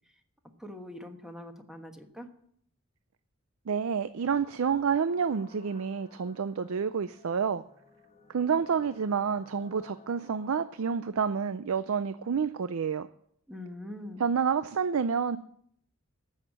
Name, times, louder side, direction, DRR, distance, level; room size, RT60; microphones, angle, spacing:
voice 1, 0.6-2.3 13.5-14.2, left 1 dB, ahead, 4 dB, 1.2 m, -43 dB
voice 2, 3.7-7.6 8.3-13.1 14.2-15.4, right 6 dB, 85° right, 13 dB, 0.5 m, -29 dB
sound 1, 4.2-11.0, left 3 dB, 30° left, 1.5 m, -57 dB
14.5 x 6.5 x 7.4 m, 0.67 s
head